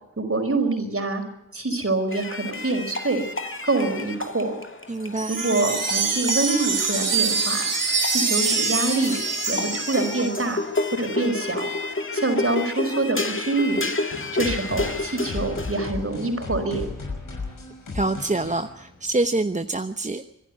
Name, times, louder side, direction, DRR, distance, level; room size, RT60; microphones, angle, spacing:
voice 1, 0.2-1.2 1.5-3.2 3.6-4.6 5.3-7.7 8.1-9.2 9.5-10.6 10.9-11.7 12.1-13.9 14.3-16.9, right 3 dB, 45° right, 5 dB, 5.3 m, -25 dB
sound 1, 2.1-15.9, left 3 dB, 40° left, 1.9 m, -31 dB
voice 2, 4.9-5.4 17.9-20.3, right 2 dB, 25° right, 9 dB, 0.9 m, -26 dB
sound 2, 5.2-10.5, right 4 dB, 85° right, 3.9 m, -25 dB
sound 3, 14.1-19.6, left 3 dB, 85° left, 5.9 m, -35 dB
25.0 x 11.0 x 9.4 m, 0.88 s
cardioid pair, 40°, 31 cm